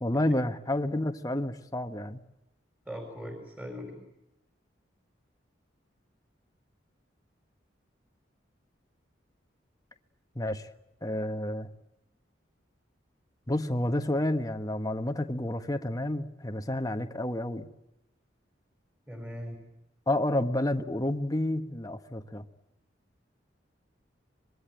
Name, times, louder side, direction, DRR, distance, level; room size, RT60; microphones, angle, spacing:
voice 1, 0.0-2.2 10.3-10.7 11.0-11.7 13.5-17.7 20.1-22.4, left 1 dB, 20° left, 7 dB, 1.3 m, -30 dB
voice 2, 2.8-4.0 19.1-19.6, equal, 10° right, 4 dB, 4.5 m, -40 dB
26.0 x 22.0 x 9.1 m, 0.87 s
head